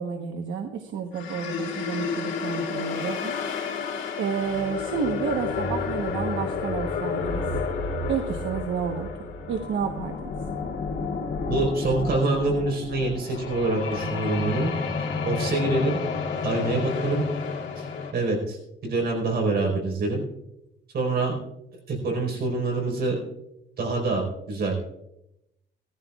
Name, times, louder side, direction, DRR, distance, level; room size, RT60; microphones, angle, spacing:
voice 1, 0.0-3.3 4.2-7.5 8.1-9.1 9.5-10.2, right 6 dB, 85° right, 4 dB, 1.1 m, -30 dB
sound 1, 1.1-18.1, left 5 dB, 80° left, 3.0 m, -30 dB
voice 2, 11.5-14.7 15.2-16.0 16.4-17.2 17.8-17.9 18.1-20.2 20.9-21.3 21.9-23.2 23.8-24.9, right 2 dB, 55° right, 0 dB, 4.5 m, -25 dB
19.0 x 14.0 x 2.4 m, 0.84 s
cardioid pair, 145°, 19 cm